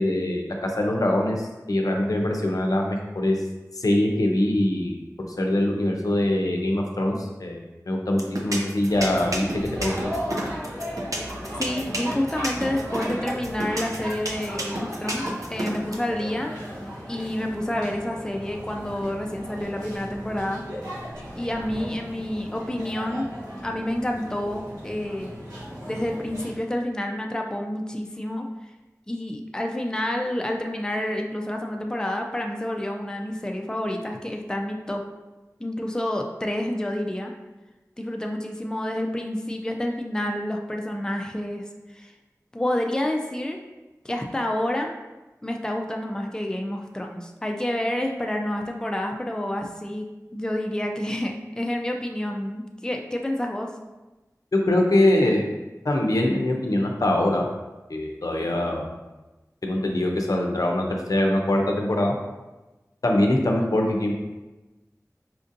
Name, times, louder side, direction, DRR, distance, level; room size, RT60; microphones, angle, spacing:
voice 1, 0.0-3.4 3.7-5.0 5.4-9.5 9.8-10.1 54.5-55.5 55.8-57.5 57.9-58.9 59.6-62.1 63.0-64.1, left 1 dB, 70° left, 1 dB, 0.5 m, -23 dB
sound 1, 8.2-15.9, right 1 dB, 60° right, 0.5 m, -30 dB
sound 2, 8.9-26.5, equal, 75° right, 1.2 m, -36 dB
voice 2, 11.6-16.5 17.1-20.6 21.3-23.3 23.6-25.3 25.9-28.5 29.1-35.0 35.6-37.3 38.0-41.6 41.9-42.1 42.5-43.6 44.0-44.9 45.4-50.1 50.3-53.7, left 1 dB, 10° left, 2 dB, 0.4 m, -29 dB
4.3 x 2.6 x 2.5 m, 1.1 s
wide cardioid pair, 40°, 6 cm